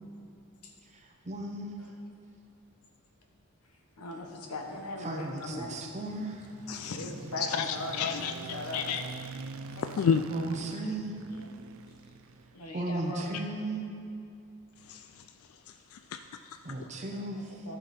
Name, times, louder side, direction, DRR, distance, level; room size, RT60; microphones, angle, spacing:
voice 1, 1.2-1.7 5.0-6.4 10.3-11.1 12.7-13.9 16.6-17.5, right 2 dB, 30° right, 2 dB, 0.9 m, -35 dB
voice 2, 4.0-5.9 6.7-8.8 9.7-10.0 11.3-11.5 11.8-12.0 12.5-13.3 17.1-17.8, left 1 dB, 85° left, 2 dB, 1.2 m, -40 dB
sound 1, 4.4-12.8, right 4 dB, 65° right, 0.4 m, -46 dB
voice 3, 7.4-8.3 8.7-9.0 9.8-10.2 14.9-15.2 15.9-16.6, left 7 dB, 70° left, 8 dB, 0.3 m, -30 dB
13.5 x 5.9 x 4.3 m, 2.5 s
head